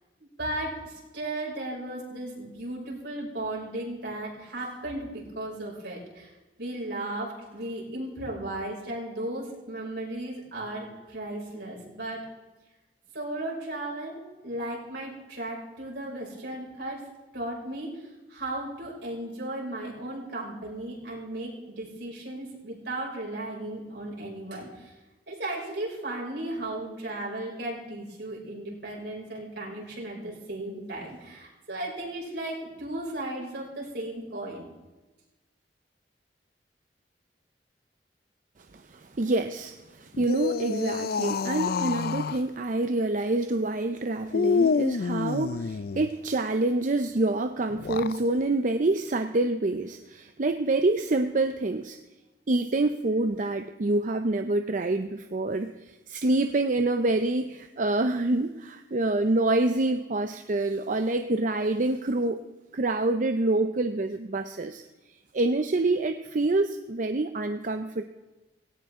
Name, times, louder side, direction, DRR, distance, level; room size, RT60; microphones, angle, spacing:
voice 1, 0.2-6.3 6.6-12.2 13.1-17.1 17.3-24.9 25.3-34.7, right 1 dB, 75° right, -3 dB, 5.8 m, -35 dB
voice 2, 38.7-52.0 52.5-62.4 62.7-64.8 65.3-68.1, right 2 dB, 45° right, 8 dB, 0.6 m, -27 dB
sound 1, 40.1-42.4 44.3-46.1 47.7-48.2, left 5 dB, 60° left, 0.4 m, -28 dB
17.5 x 17.5 x 3.7 m, 1.1 s
head